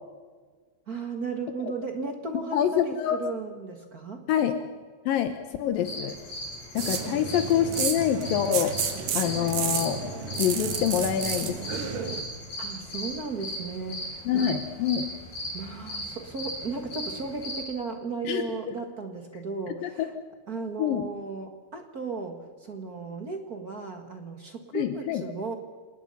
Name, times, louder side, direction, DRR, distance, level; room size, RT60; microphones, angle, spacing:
voice 1, 0.9-4.2 7.0-7.2 12.6-14.6 15.5-20.1 20.5-25.5, right 4 dB, 40° right, 4 dB, 1.4 m, -35 dB
voice 2, 2.5-3.2 4.3-4.5 5.1-5.3 5.6-6.2 6.7-8.7 9.2-10.0 10.4-11.6 14.3-15.1 18.2-18.4 19.8-20.1 20.8-21.0 24.7-25.2, left 10 dB, 80° left, 8 dB, 2.8 m, -25 dB
sound 1, 5.8-17.6, equal, 60° left, 8.9 m, -37 dB
sound 2, 6.8-12.2, right 7 dB, 70° right, 3.5 m, -31 dB
27.5 x 19.5 x 5.6 m, 1.5 s
omnidirectional pair, 4.1 m